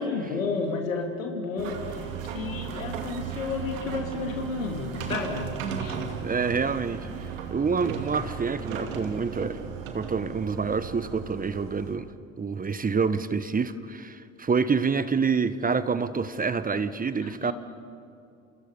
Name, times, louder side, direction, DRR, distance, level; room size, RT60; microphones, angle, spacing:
voice 1, 0.0-6.0 17.2-17.5, left 4 dB, 80° left, 3 dB, 3.2 m, -32 dB
sound 1, 1.6-11.9, right 7 dB, 75° right, 2.5 m, -35 dB
voice 2, 6.2-7.1 7.5-9.6 9.9-12.1 12.4-17.5, right 5 dB, 20° right, 13 dB, 1.2 m, -27 dB
30.0 x 28.5 x 5.4 m, 2.5 s
figure-of-eight pair, 60°, 39 cm